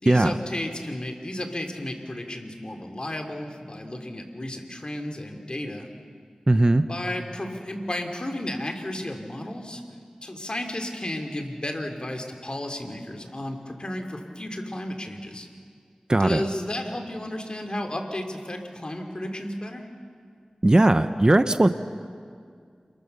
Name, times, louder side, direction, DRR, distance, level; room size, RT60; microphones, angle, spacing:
voice 1, 0.0-5.9 6.9-9.8 10.2-15.5 16.2-19.9, left 1 dB, 40° left, 4 dB, 3.1 m, -33 dB
voice 2, 6.5-6.8 16.1-16.4 20.6-21.7, right 2 dB, 35° right, 10 dB, 1.0 m, -18 dB
28.0 x 22.5 x 6.8 m, 2.2 s
cardioid pair, 40°, 2 cm